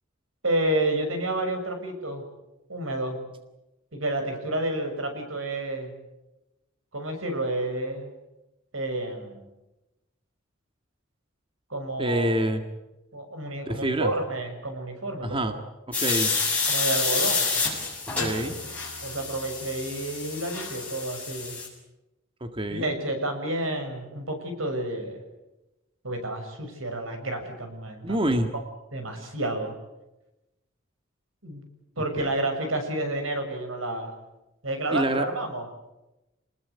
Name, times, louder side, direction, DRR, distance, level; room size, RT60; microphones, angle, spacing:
voice 1, 0.4-2.2 2.7-3.2 3.9-5.9 6.9-8.1 8.7-9.5 11.7-12.3 13.1-15.6 16.7-17.6 19.0-21.6 22.7-25.2 26.0-28.6 28.9-29.7 31.4-31.6 32.0-34.1 34.6-35.6, right 1 dB, 90° right, 5 dB, 6.7 m, -30 dB
voice 2, 12.0-12.6 13.7-14.1 15.2-15.6 15.9-16.3 18.2-18.6 22.4-22.9 28.0-28.5 32.2-32.3 34.9-35.3, right 1 dB, 25° right, 7 dB, 1.7 m, -26 dB
sound 1, 15.9-21.7, left 4 dB, 5° left, 7.6 m, -28 dB
28.5 x 20.5 x 8.4 m, 0.98 s
head